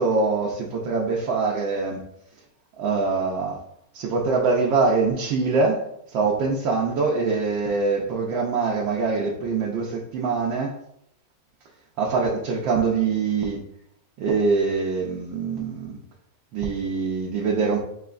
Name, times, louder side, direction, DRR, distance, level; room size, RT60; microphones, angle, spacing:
voice 1, 0.0-2.0 2.8-3.6 3.9-5.8 6.1-10.8 12.0-13.6 14.2-16.0 16.5-17.8, right 4 dB, 70° right, -2 dB, 1.3 m, -24 dB
6.7 x 2.9 x 2.4 m, 0.76 s
omnidirectional pair, 2.2 m